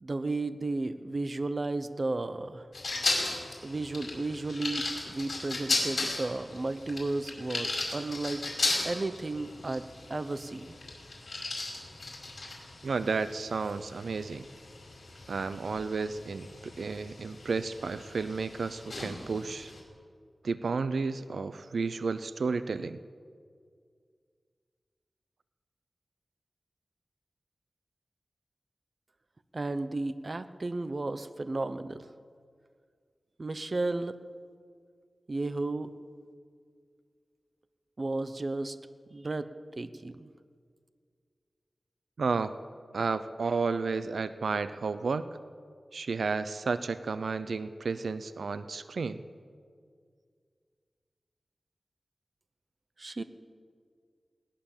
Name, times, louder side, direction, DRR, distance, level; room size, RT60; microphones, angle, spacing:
voice 1, 0.0-2.7 3.6-8.4 8.8-10.8 29.5-32.1 33.4-34.2 35.3-35.9 38.0-38.8 39.1-39.5 39.8-40.3 53.0-53.2, right 2 dB, 40° right, 11 dB, 0.9 m, -33 dB
sound 1, 2.7-19.8, left 2 dB, 60° left, 5.2 m, -36 dB
voice 2, 12.8-14.5 15.3-19.7 20.4-23.0 42.2-42.5 42.9-45.3 45.9-49.2, right 4 dB, 90° right, 12 dB, 0.7 m, -32 dB
20.5 x 18.5 x 7.3 m, 2.1 s
wide cardioid pair, 105°, 0 cm